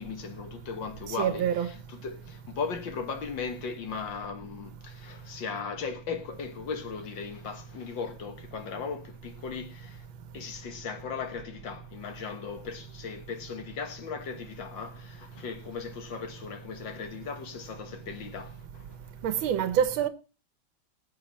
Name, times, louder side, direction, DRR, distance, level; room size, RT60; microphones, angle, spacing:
voice 1, 0.0-10.0 10.3-18.9, left 5 dB, 70° left, 2.1 m, -37 dB
voice 2, 1.2-1.7 19.2-20.1, right 9 dB, 85° right, 1.6 m, -26 dB
19.0 x 8.0 x 4.1 m
omnidirectional pair, 2.1 m